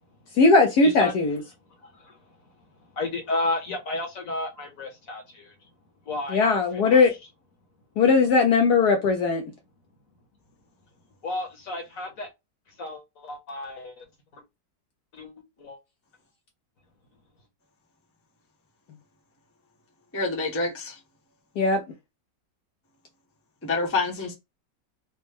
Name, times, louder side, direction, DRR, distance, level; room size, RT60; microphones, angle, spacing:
voice 1, 0.3-1.4 6.3-7.1 8.0-9.4 21.6-21.8, left 4 dB, 70° left, 1.1 m, -19 dB
voice 2, 1.8-5.5 6.0-6.6 11.2-12.3 12.8-14.0 14.3-14.4 15.1-15.3 15.6-15.8, left 2 dB, 55° left, 1.4 m, -33 dB
voice 3, 20.1-21.0 23.6-24.3, left 3 dB, 10° left, 0.7 m, -27 dB
4.1 x 2.2 x 3.4 m
omnidirectional pair, 1.9 m